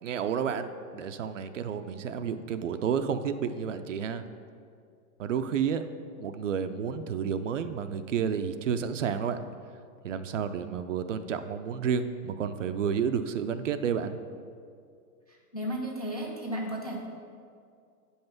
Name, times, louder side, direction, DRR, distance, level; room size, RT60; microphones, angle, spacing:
voice 1, 0.0-4.2 5.2-5.8 6.2-9.4 10.0-14.2, right 7 dB, 55° right, 10 dB, 0.5 m, -30 dB
voice 2, 15.5-17.0, equal, 30° left, -2 dB, 0.3 m, -33 dB
8.6 x 5.5 x 5.9 m, 2.3 s
hypercardioid pair, 170°, 47 cm